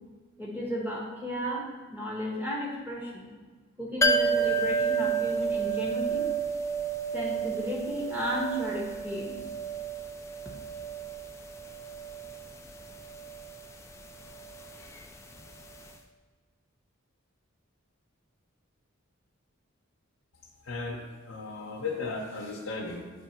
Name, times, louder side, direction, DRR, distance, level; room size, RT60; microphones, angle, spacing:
voice 1, 0.4-3.3 3.8-6.2 7.1-9.4, equal, 10° right, -4 dB, 1.2 m, -34 dB
sound 1, 4.0-15.6 15.9-16.0, right 4 dB, 15° left, 0.3 m, -31 dB
voice 2, 20.6-23.1, left 3 dB, 80° left, -1 dB, 0.7 m, -36 dB
8.2 x 3.4 x 4.3 m, 1.4 s
head